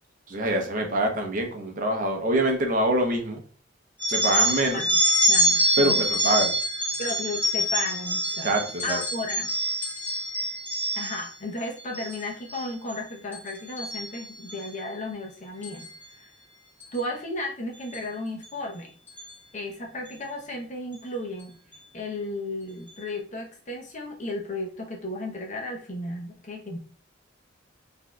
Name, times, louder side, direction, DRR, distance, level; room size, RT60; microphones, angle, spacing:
voice 1, 0.3-3.4 4.1-4.8 5.8-6.6 8.4-9.0, right 1 dB, 45° right, 3 dB, 0.6 m, -25 dB
sound 1, 4.0-11.3 11.8-12.2 12.5-12.9 13.3-14.7 15.6-15.9 16.8-17.0 17.9-18.0 18.4-18.5 19.1-19.3, equal, 10° left, 1.3 m, -25 dB
voice 2, 5.3-6.0 7.0-8.5 8.8-9.5 10.9-15.9 16.9-18.9 19.5-21.6 21.9-26.8, left 2 dB, 40° left, 1 dB, 0.8 m, -34 dB
4.1 x 2.7 x 2.3 m, 0.41 s
head